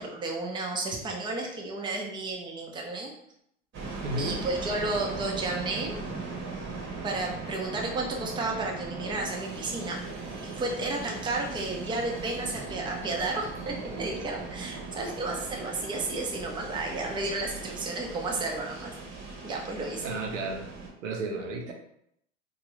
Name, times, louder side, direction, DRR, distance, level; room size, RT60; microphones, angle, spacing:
voice 1, 0.0-3.1 4.2-6.0 7.0-18.9 19.4-20.1, right 2 dB, 15° right, 0 dB, 0.6 m, -32 dB
sound 1, 3.7-20.9, right 3 dB, 35° right, 1.0 m, -39 dB
voice 2, 4.0-4.4 20.0-20.7 21.0-21.7, right 2 dB, 80° right, 2 dB, 0.7 m, -33 dB
2.9 x 2.4 x 3.0 m, 0.73 s
hypercardioid pair, 100°, 36 cm